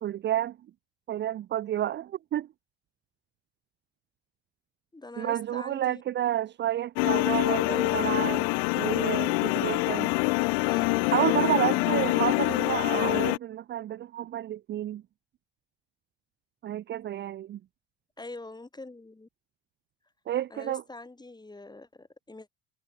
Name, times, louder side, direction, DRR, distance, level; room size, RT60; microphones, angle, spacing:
voice 1, 0.0-0.6 1.1-2.5 5.2-8.5 8.8-10.1 11.1-15.0 16.6-17.6 20.3-20.8, right 12 dB, 35° right, 0.7 m, -30 dB
voice 2, 4.9-6.0 11.8-12.1 18.2-19.3 20.5-22.5, left 2 dB, 15° left, 6.0 m, -44 dB
sound 1, 7.0-13.4, left 37 dB, 60° left, 0.4 m, -25 dB
figure-of-eight pair, 55°, 31 cm